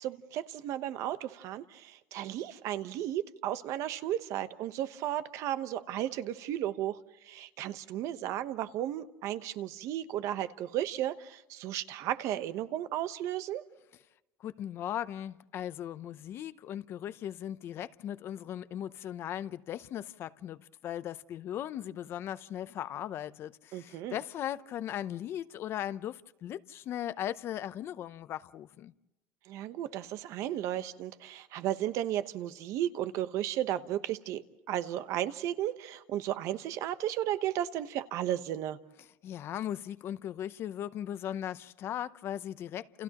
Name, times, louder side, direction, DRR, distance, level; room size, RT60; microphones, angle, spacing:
voice 1, 0.0-7.0 7.2-13.6 23.7-24.2 29.5-38.8, right 12 dB, 55° right, 1.0 m, -34 dB
voice 2, 14.4-28.9 39.2-43.0, left 11 dB, 40° left, 0.7 m, -38 dB
30.0 x 29.0 x 3.0 m
cardioid pair, 160°, 6 cm